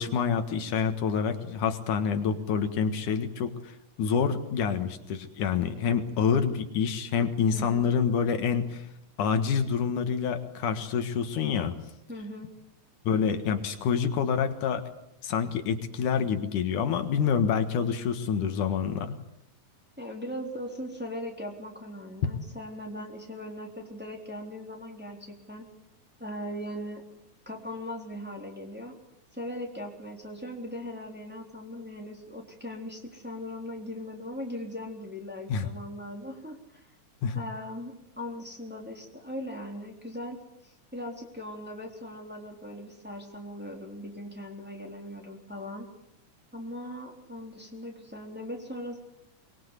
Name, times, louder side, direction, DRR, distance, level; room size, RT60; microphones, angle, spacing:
voice 1, 0.0-8.9 9.2-11.7 13.0-14.8 15.2-19.1 35.5-35.7 37.2-37.4, left 6 dB, 80° left, 7 dB, 3.1 m, -27 dB
voice 2, 7.5-7.9 12.1-12.5 20.0-25.7 26.2-27.0 27.5-28.9 29.3-36.9 37.3-45.9 46.5-49.0, left 1 dB, 5° right, 0 dB, 3.4 m, -39 dB
23.5 x 21.5 x 8.3 m, 0.81 s
omnidirectional pair, 3.5 m